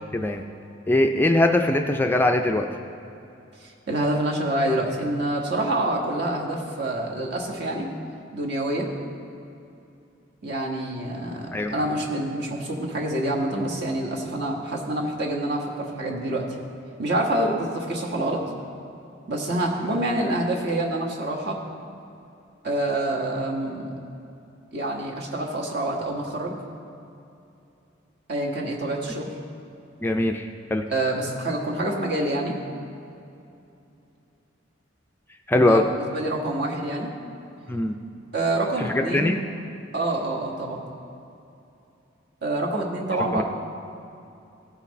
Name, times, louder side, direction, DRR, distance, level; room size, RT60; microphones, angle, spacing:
voice 1, 0.1-0.4 0.9-2.7 11.5-11.7 30.0-30.8 35.5-35.9 37.7-38.0 38.8-39.4 43.3-43.4, left 1 dB, 10° left, 4 dB, 0.3 m, -21 dB
voice 2, 3.6-7.9 8.3-8.9 10.4-16.5 17.0-18.4 19.3-21.6 22.6-24.0 24.7-26.5 28.3-29.3 30.9-32.5 35.7-37.1 38.3-39.4 39.9-40.8 42.4-43.4, right 1 dB, 55° right, -1 dB, 1.5 m, -27 dB
16.5 x 5.7 x 4.1 m, 2.7 s
head